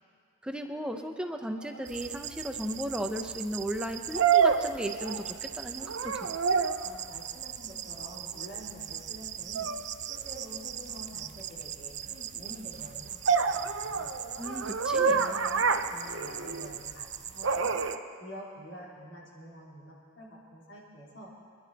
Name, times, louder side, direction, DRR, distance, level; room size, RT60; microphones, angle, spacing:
voice 1, 0.4-6.4 14.4-15.2, equal, 5° right, 4 dB, 0.8 m, -35 dB
sound 1, 1.8-18.0, right 11 dB, 35° right, 0.4 m, -40 dB
sound 2, 1.8-1.9 4.2-5.5 5.8-6.9 9.6-9.8 13.3-16.7 17.4-18.0, right 6 dB, 80° right, 0.8 m, -27 dB
voice 2, 6.8-9.7 10.1-14.2 14.8-17.7 18.2-21.3, equal, 65° left, -5 dB, 4.2 m, -48 dB
26.0 x 11.5 x 4.3 m, 2.2 s
head